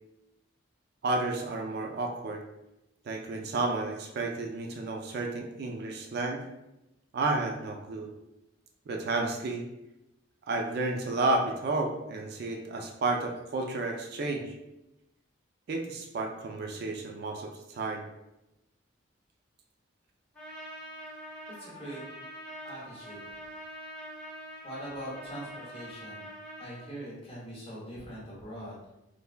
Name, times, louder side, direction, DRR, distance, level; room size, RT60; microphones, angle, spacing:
voice 1, 1.0-2.4 3.0-6.4 7.1-8.1 8.9-9.6 10.5-14.6 15.7-18.1, right 2 dB, 55° right, 2 dB, 0.3 m, -31 dB
Trumpet, 20.3-26.8, equal, 5° left, 0.7 m, -44 dB
voice 2, 21.6-22.0 22.6-23.3 24.6-26.3 26.6-28.9, right 1 dB, 30° left, -6 dB, 1.0 m, -42 dB
3.2 x 2.2 x 2.4 m, 0.92 s
head